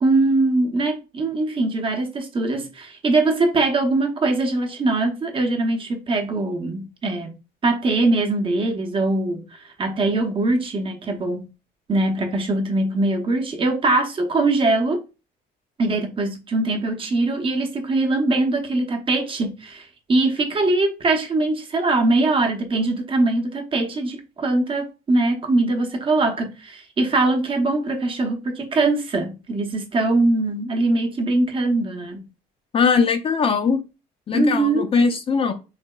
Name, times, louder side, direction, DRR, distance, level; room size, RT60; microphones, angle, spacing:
voice 1, 0.0-7.4 7.6-9.4 9.8-11.5 11.9-15.0 15.8-32.3 34.3-34.9, right 2 dB, 30° right, 0.8 m, -22 dB
voice 2, 32.7-33.8 34.3-35.5, left 5 dB, 35° left, 0.5 m, -20 dB
4.0 x 2.7 x 2.3 m
cardioid pair, 110°, 17 cm